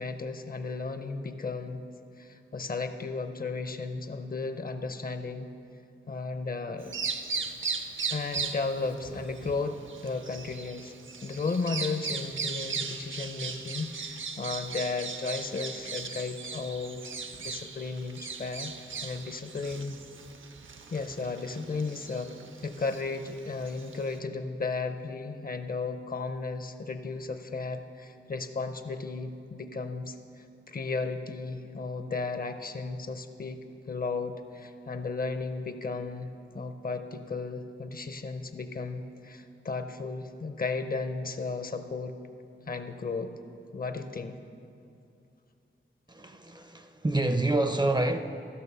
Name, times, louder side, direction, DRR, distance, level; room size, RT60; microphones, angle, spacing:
voice 1, 0.0-1.8 2.2-5.5 6.1-6.9 8.1-10.9 11.2-17.1 17.4-18.7 19.0-20.0 20.9-22.3 22.6-33.6 33.9-42.2 42.7-43.3 43.7-44.4, left 4 dB, 45° left, 8 dB, 0.6 m, -34 dB
Bird vocalization bird call bird song, 6.8-24.2, right 5 dB, 65° right, 0.6 m, -38 dB
voice 2, 46.1-48.2, right 2 dB, 20° right, 8 dB, 0.4 m, -27 dB
14.0 x 6.1 x 5.5 m, 2.6 s
wide cardioid pair, 105°, 21 cm